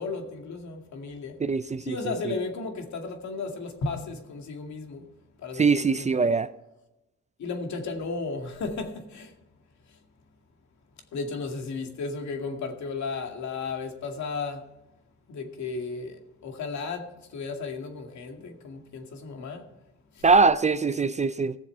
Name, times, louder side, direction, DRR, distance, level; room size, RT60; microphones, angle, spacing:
voice 1, 0.0-1.4 1.9-5.0 5.4-6.3 7.4-9.3 11.1-14.6 15.3-19.7, left 4 dB, 65° left, 2.2 m, -34 dB
voice 2, 1.4-2.0 2.2-2.3 5.6-6.5 20.2-21.6, right 4 dB, 25° right, 0.4 m, -22 dB
17.0 x 7.2 x 4.6 m
cardioid pair, 90°, 30 cm